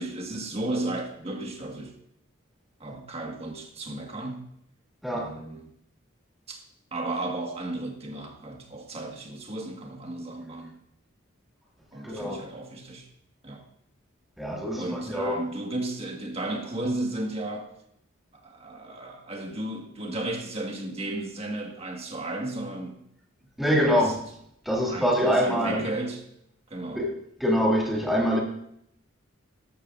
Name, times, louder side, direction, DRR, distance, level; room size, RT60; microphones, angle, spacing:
voice 1, 0.0-1.9 2.8-4.4 5.1-5.7 6.5-6.6 6.9-10.8 11.9-13.1 13.4-13.6 14.7-17.7 18.3-23.0 23.7-24.1 24.9-26.2 26.7-27.1, right 2 dB, 30° right, 1.6 m, -34 dB
voice 2, 12.0-12.4 14.4-15.4 23.6-24.1 24.7-25.9 26.9-27.1 27.4-28.4, equal, ahead, 2.2 m, -24 dB
13.5 x 12.5 x 2.6 m
head